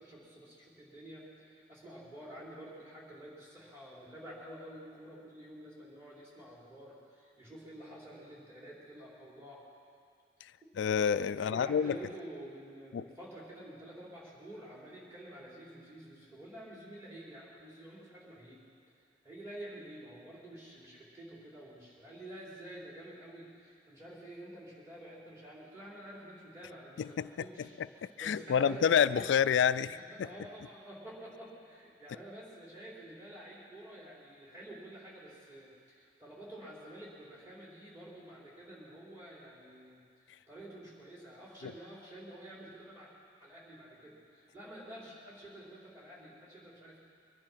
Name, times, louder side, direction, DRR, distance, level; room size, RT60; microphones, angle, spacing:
voice 1, 0.0-9.6 10.6-10.7 11.4-18.6 19.2-29.2 29.8-40.0 40.5-43.1 43.4-47.0, right 1 dB, 15° right, -6 dB, 4.2 m, -49 dB
voice 2, 10.8-12.0 12.9-13.0 27.0-27.3 28.2-30.3 41.6-41.7, left 7 dB, 80° left, 14 dB, 0.3 m, -28 dB
23.0 x 11.0 x 5.8 m, 2.2 s
head